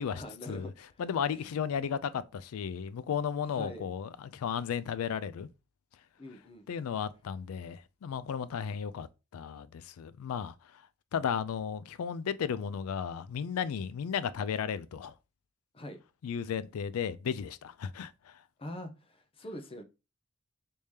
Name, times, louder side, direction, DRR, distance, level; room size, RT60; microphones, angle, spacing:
voice 1, 0.1-1.0 1.3-1.5 3.4-3.9 6.2-6.6 15.7-16.0 18.6-19.8, left 1 dB, 25° left, 0.6 m, -44 dB
voice 2, 1.0-5.5 6.7-9.1 9.3-10.5 11.1-15.1 16.2-18.1, left 7 dB, 80° left, 0.3 m, -34 dB
3.5 x 2.8 x 3.2 m
head